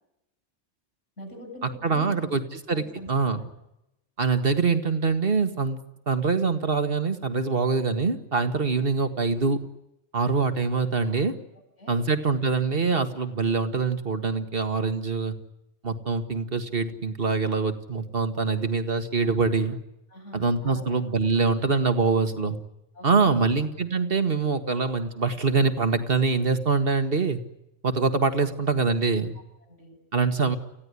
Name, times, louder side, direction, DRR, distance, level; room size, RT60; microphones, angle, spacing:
voice 1, 1.2-2.4 2.7-3.1 3.4-3.5 11.8-12.0 20.1-21.4 22.9-23.5 29.3-30.0, equal, 80° left, 3 dB, 7.5 m, -44 dB
voice 2, 1.8-3.4 4.2-5.8 6.1-9.6 10.1-11.3 11.9-15.3 15.8-19.8 20.3-22.6 23.0-27.4 27.8-29.3 30.1-30.6, right 4 dB, 50° right, 9 dB, 2.0 m, -24 dB
29.5 x 16.0 x 9.8 m, 0.89 s
omnidirectional pair, 1.2 m